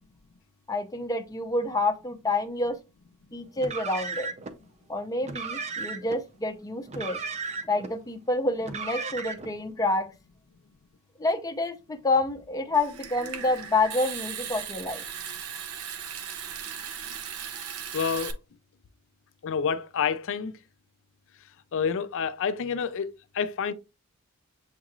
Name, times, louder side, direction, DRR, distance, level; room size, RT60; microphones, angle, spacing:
voice 1, 0.7-2.8 3.3-4.3 4.9-7.2 7.7-10.1 11.2-15.0, left 2 dB, 15° left, 0.6 m, -28 dB
Car, 3.6-4.5 5.2-6.2 6.9-7.9 8.6-9.5, right 4 dB, 30° right, 0.6 m, -35 dB
Water tap faucet / Sink (filling or washing) / Trickle dribble, 12.7-18.3, right 8 dB, 80° right, 0.6 m, -37 dB
voice 2, 17.9-18.4 19.4-20.6 21.7-23.7, left 6 dB, 60° left, 0.4 m, -28 dB
7.3 x 3.0 x 2.4 m
head